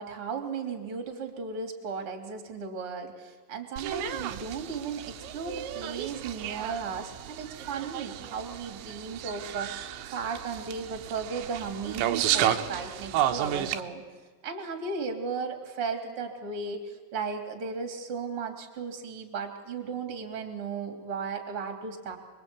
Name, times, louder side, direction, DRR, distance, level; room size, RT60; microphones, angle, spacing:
voice 1, 0.0-14.0 14.4-22.2, right 5 dB, 35° right, 5 dB, 3.1 m, -35 dB
sound 1, 3.8-13.8, right 11 dB, 75° right, 3.3 m, -32 dB
26.5 x 23.0 x 8.6 m, 1.3 s
omnidirectional pair, 5.5 m